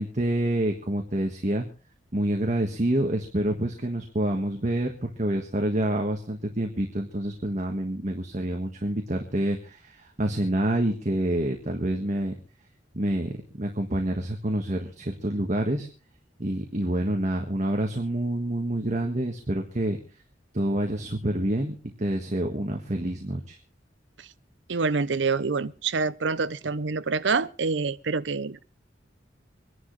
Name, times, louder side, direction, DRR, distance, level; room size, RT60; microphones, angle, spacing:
voice 1, 0.0-1.7 2.1-12.3 12.9-15.9 16.4-20.0 20.5-23.6, right 1 dB, 40° right, 1.5 m, -27 dB
voice 2, 24.7-28.6, right 4 dB, 80° right, 0.7 m, -26 dB
25.5 x 11.0 x 3.2 m
head